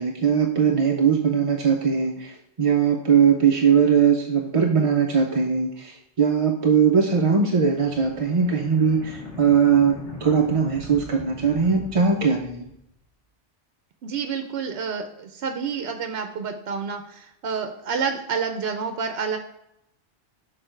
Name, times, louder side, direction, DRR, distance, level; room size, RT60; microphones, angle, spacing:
voice 1, 0.0-9.9 10.2-12.7, right 6 dB, 40° right, 1 dB, 0.5 m, -20 dB
sound 1, 7.1-12.9, left 1 dB, 85° left, 2.1 m, -41 dB
voice 2, 14.0-19.4, right 6 dB, 65° right, 6 dB, 0.8 m, -29 dB
6.6 x 4.2 x 4.4 m, 0.79 s
omnidirectional pair, 1.2 m